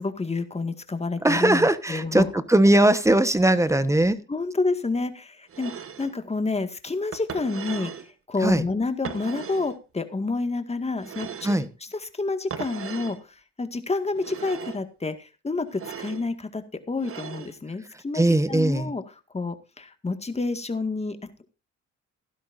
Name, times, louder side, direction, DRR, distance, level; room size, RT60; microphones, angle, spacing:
voice 1, 0.0-2.3 4.3-5.7 6.0-7.9 8.3-11.6 12.0-19.0 19.3-21.3, left 3 dB, 20° left, 8 dB, 1.9 m, -29 dB
voice 2, 1.2-4.2 8.4-8.6 11.4-11.7 18.1-18.9, right 1 dB, 10° right, 13 dB, 1.2 m, -20 dB
sound 1, 5.5-6.1 7.1-8.1 9.0-9.8 11.0-11.7 12.5-13.2 14.1-14.8 15.7-16.3 17.0-17.5, right 8 dB, 50° right, 1.2 m, -37 dB
16.0 x 12.0 x 2.6 m, 0.32 s
cardioid pair, 90°, 30 cm